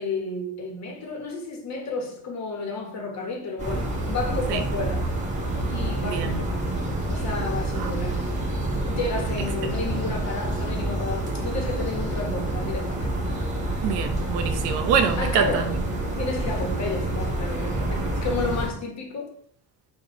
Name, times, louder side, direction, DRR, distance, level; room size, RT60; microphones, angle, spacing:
voice 1, 0.0-5.0 5.7-8.3 8.9-13.2 15.2-15.7 16.2-19.3, left 3 dB, 45° left, 1.2 m, -32 dB
sound 1, 3.6-18.7, right 1 dB, 20° right, 1.1 m, -28 dB
voice 2, 6.0-6.4 7.8-7.9 13.8-15.6, right 7 dB, 90° right, 0.7 m, -25 dB
4.2 x 2.6 x 4.7 m
cardioid pair, 130°, 39 cm